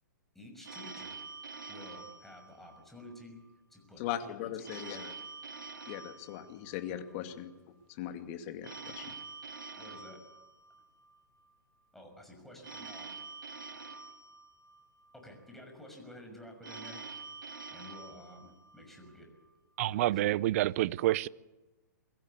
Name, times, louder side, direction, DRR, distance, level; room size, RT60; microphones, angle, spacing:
voice 1, 0.3-1.2 1.7-3.4 3.7-4.9 9.8-10.2 11.9-13.2 15.1-17.0 17.7-19.3 19.8-20.4, left 1 dB, ahead, 6.1 m, -51 dB
Telephone, 0.6-3.1 4.6-7.1 8.6-11.1 12.6-15.1 16.6-19.1, right 4 dB, 85° right, 3.2 m, -47 dB
voice 2, 4.0-5.1 5.9-7.5 7.9-9.1, left 11 dB, 40° left, 2.4 m, -39 dB
voice 3, 19.8-21.3, right 15 dB, 50° right, 0.6 m, -28 dB
22.5 x 15.5 x 8.3 m
hypercardioid pair, 135°, 10 cm